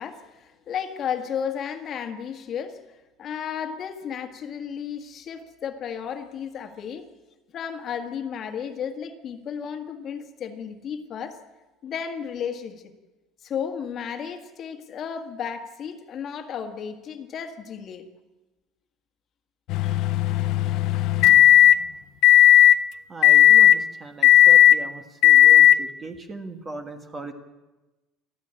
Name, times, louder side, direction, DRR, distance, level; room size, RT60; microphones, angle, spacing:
voice 1, 0.0-7.1 7.5-11.4 11.8-12.8 13.4-18.1 19.8-20.1 20.6-20.7 21.2-21.3, left 7 dB, 30° left, 6 dB, 1.8 m, -33 dB
sound 1, 19.7-21.8 22.2-22.8 23.2-23.8 24.2-24.8 25.2-25.8, left 11 dB, 50° left, 0.7 m, -14 dB
voice 2, 23.1-27.3, right 3 dB, 15° right, 7 dB, 1.4 m, -38 dB
29.5 x 12.0 x 8.8 m, 1.1 s
cardioid pair, 180°, 0 cm